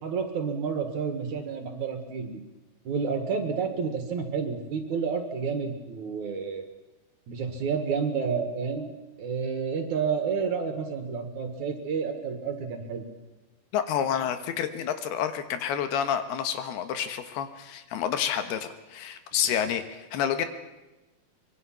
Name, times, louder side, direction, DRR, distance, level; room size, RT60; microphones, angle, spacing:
voice 1, 0.0-2.4 2.8-6.6 7.3-8.9 9.2-13.0, right 5 dB, 55° right, 6 dB, 2.8 m, -30 dB
voice 2, 13.7-20.5, left 9 dB, 85° left, 9 dB, 3.3 m, -29 dB
24.5 x 22.0 x 6.0 m, 1.1 s
omnidirectional pair, 4.5 m